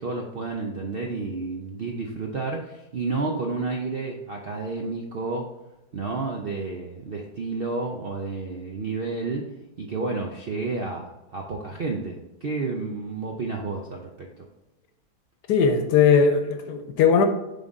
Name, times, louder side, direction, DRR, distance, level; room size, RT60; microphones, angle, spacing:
voice 1, 0.0-5.5 5.9-9.5 9.8-14.5, right 3 dB, 70° right, 1 dB, 0.5 m, -31 dB
voice 2, 15.5-17.3, left 6 dB, 85° left, 6 dB, 1.2 m, -19 dB
7.2 x 3.8 x 3.8 m, 0.96 s
omnidirectional pair, 1.8 m